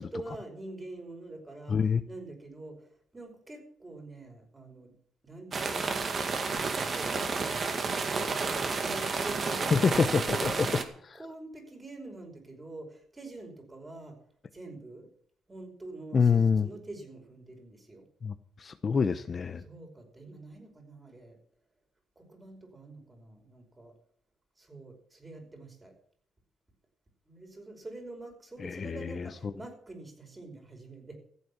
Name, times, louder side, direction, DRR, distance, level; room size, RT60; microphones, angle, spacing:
voice 1, 0.0-1.8 2.1-4.9 5.2-5.8 6.4-10.6 11.1-14.2 14.5-15.1 15.5-18.1 19.6-21.4 22.2-23.9 24.6-25.9 27.2-31.2, right 2 dB, 20° right, 3 dB, 5.4 m, -46 dB
voice 2, 1.7-2.0 9.7-10.5 11.1-11.2 16.1-16.7 18.2-19.6 28.6-29.5, left 5 dB, 40° left, 11 dB, 0.9 m, -26 dB
sound 1, 5.5-10.8, right 4 dB, 45° right, 2.1 m, -31 dB
14.5 x 8.6 x 7.2 m, 0.62 s
cardioid pair, 90°, 0 cm